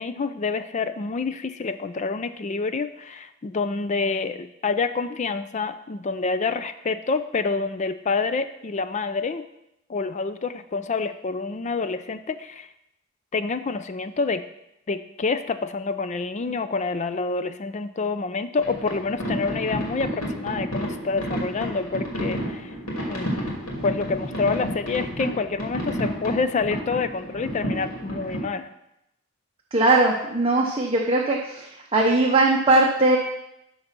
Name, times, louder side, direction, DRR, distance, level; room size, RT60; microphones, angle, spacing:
voice 1, 0.0-9.5 9.9-12.7 13.3-14.4 14.9-22.7 23.0-23.3 23.7-28.7, left 4 dB, 35° left, 11 dB, 0.4 m, -27 dB
sound 1, 18.6-28.4, equal, 85° left, 2.6 m, -31 dB
voice 2, 29.7-33.2, right 2 dB, 25° right, -1 dB, 0.8 m, -20 dB
11.5 x 3.9 x 5.9 m, 0.85 s
head